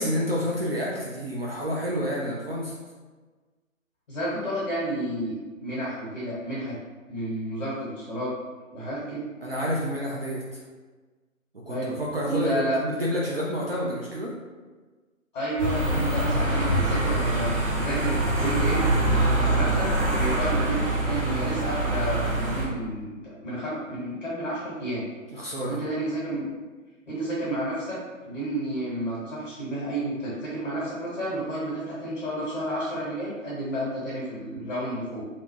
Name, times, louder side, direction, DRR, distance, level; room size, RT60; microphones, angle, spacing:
voice 1, 0.0-2.7 9.4-10.6 11.5-14.3 25.3-25.8, equal, 45° right, -5 dB, 0.5 m, -29 dB
voice 2, 4.1-6.8 7.1-8.3 8.7-9.2 11.7-12.0 12.2-12.8 15.3-18.9 19.4-25.1 25.7-26.4 27.1-35.2, right 1 dB, 35° left, -7 dB, 1.0 m, -31 dB
sound 1, 15.6-22.6, right 2 dB, 25° right, 1.0 m, -24 dB
2.7 x 2.2 x 3.0 m, 1.3 s
figure-of-eight pair, 140°, 41 cm